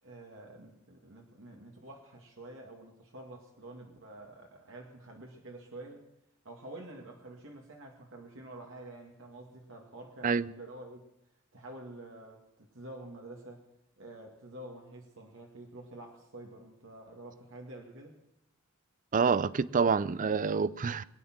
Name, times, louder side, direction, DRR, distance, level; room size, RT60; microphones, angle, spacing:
voice 1, 0.0-6.0 6.4-11.0 11.5-13.7 14.0-18.2, right 1 dB, 65° right, 2.1 m, -48 dB
voice 2, 19.1-21.0, right 5 dB, 40° right, 0.5 m, -27 dB
22.0 x 9.7 x 6.1 m
head